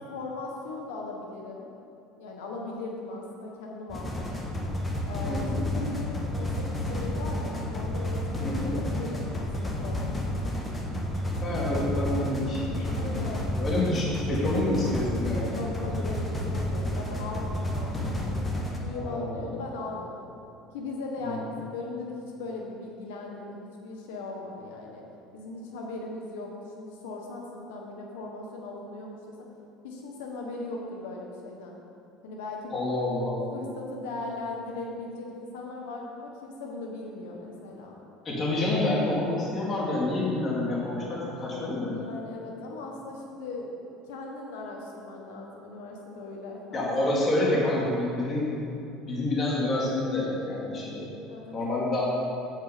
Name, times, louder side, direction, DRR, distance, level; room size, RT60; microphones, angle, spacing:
voice 1, 0.1-1.7 2.2-4.4 5.1-10.6 12.9-13.6 13.9-14.1 15.5-18.5 18.8-20.3 20.7-25.0 25.3-29.4 29.8-31.8 32.2-32.7 33.5-38.0 41.9-46.9 47.3-47.9 51.3-51.9, left 2 dB, 85° left, 0 dB, 1.2 m, -38 dB
sound 1, 3.9-18.8, left 1 dB, 15° left, 1.4 m, -31 dB
voice 2, 5.3-5.6 8.4-8.8 11.4-13.1 13.6-15.5 18.9-19.6 21.2-21.5 32.7-33.5 38.2-42.0 46.7-48.5 49.0-51.1 51.5-52.0, left 2 dB, 35° left, -5 dB, 2.3 m, -28 dB
8.1 x 7.7 x 5.0 m, 2.7 s
supercardioid pair, 110°, 0 cm